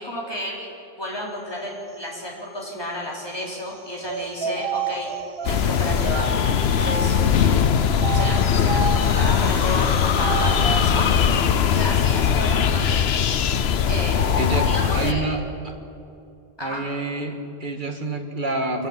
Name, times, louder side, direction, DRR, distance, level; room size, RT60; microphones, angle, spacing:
voice 1, 0.0-5.1 5.4-6.3 6.8-7.7 8.1-11.1 11.7-13.0 13.9-14.3 14.6-15.3 16.6-16.8, left 1 dB, 25° left, -3 dB, 4.3 m, -32 dB
sound 1, 4.0-7.4 7.9-10.9, right 5 dB, 65° right, 1.3 m, -30 dB
sound 2, 5.4-15.1, left 7 dB, 80° left, 1.0 m, -20 dB
sound 3, 8.5-12.6 12.9-13.0 13.3-13.4 13.7-13.8, equal, 15° right, 3.6 m, -43 dB
voice 2, 14.4-14.7 14.9-15.7 16.6-18.9, right 2 dB, 50° right, 3 dB, 2.1 m, -28 dB
25.0 x 14.5 x 8.2 m, 2.8 s
omnidirectional pair, 1.1 m